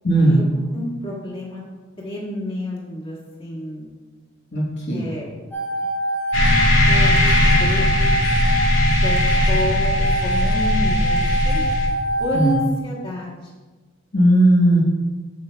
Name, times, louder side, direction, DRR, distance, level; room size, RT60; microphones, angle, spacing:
voice 1, 0.0-0.4 4.5-5.1 12.3-12.5 14.1-14.8, right 1 dB, 60° left, -5 dB, 1.2 m, -16 dB
voice 2, 0.7-1.6 2.0-3.9 4.9-5.3 6.8-7.9 9.0-9.2 9.5-11.6 12.2-13.5, left 1 dB, 25° left, -4 dB, 1.7 m, -29 dB
sound 1, 5.5-12.5, right 1 dB, 10° left, 1.6 m, -24 dB
sound 2, 6.3-11.9, left 1 dB, 80° left, 1.9 m, -18 dB
8.3 x 7.6 x 2.3 m, 1.3 s
head